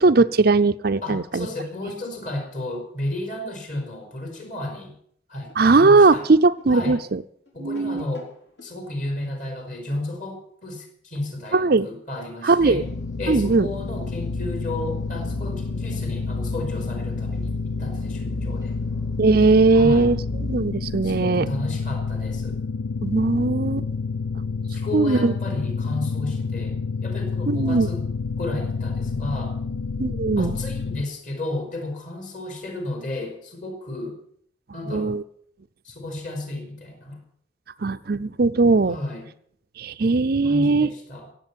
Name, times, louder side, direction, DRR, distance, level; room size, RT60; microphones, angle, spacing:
voice 1, 0.0-1.5 5.6-7.2 7.6-8.0 11.5-11.9 12.4-12.8 13.3-13.7 19.2-21.5 23.0-23.8 24.9-25.3 27.5-27.9 30.0-30.5 34.9-35.2 37.8-39.0 39.8-40.9, right 3 dB, 50° right, 10 dB, 0.5 m, -19 dB
voice 2, 1.0-4.9 5.3-6.2 6.7-7.0 7.5-8.3 8.6-12.9 13.2-18.7 19.7-20.1 21.0-22.6 24.7-28.1 28.4-29.6 30.4-34.2 34.7-35.2 35.8-37.2 38.9-39.3 40.4-41.3, left 2 dB, 40° left, 3 dB, 4.6 m, -33 dB
sound 1, 5.5-8.8, left 1 dB, 60° left, 3.6 m, -50 dB
sound 2, 12.6-20.6, equal, 15° left, 1.4 m, -34 dB
sound 3, 12.8-31.1, left 4 dB, 75° left, 0.5 m, -29 dB
16.5 x 8.3 x 8.8 m, 0.65 s
head